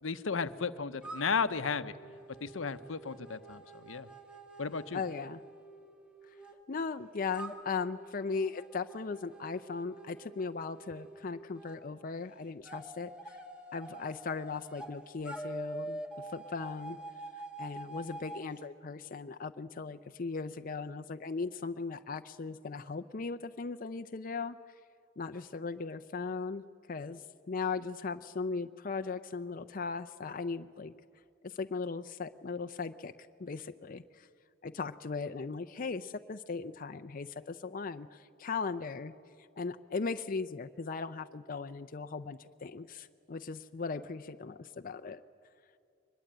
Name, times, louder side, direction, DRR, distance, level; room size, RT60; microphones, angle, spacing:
voice 1, 0.0-2.0 2.4-4.1 4.6-5.0, left 5 dB, 80° left, 13 dB, 0.8 m, -34 dB
sound 1, 1.0-6.5 7.3-11.8 12.6-14.9 15.2-18.5, right 2 dB, 5° right, 1.7 m, -46 dB
voice 2, 4.9-5.4 6.7-13.4 13.7-17.0 17.6-24.6 25.2-30.9 31.4-33.1 33.4-34.3 34.6-39.2 39.6-45.2, left 4 dB, 45° left, 9 dB, 0.5 m, -38 dB
23.0 x 21.0 x 8.9 m, 2.3 s
head